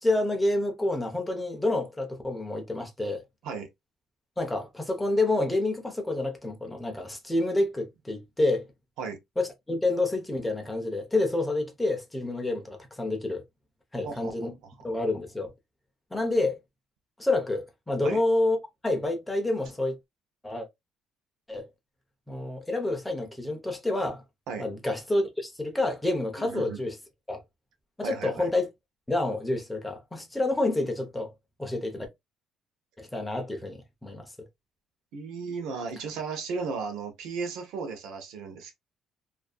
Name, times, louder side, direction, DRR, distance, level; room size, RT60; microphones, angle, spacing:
voice 1, 0.0-3.2 4.4-8.7 9.4-13.4 13.9-14.5 14.8-15.5 16.1-16.6 17.2-18.6 18.8-20.0 20.4-20.7 21.5-21.7 22.3-24.2 24.6-27.0 27.3-27.4 28.0-28.7 29.1-31.3 31.6-32.1 33.0-34.3, left 2 dB, 5° left, 0.6 m, -28 dB
voice 2, 14.0-14.7 18.0-18.2 24.5-24.7 26.4-26.8 28.0-28.5 35.1-38.7, right 5 dB, 85° right, 0.7 m, -35 dB
2.6 x 2.5 x 2.2 m
cardioid pair, 175°, 0 cm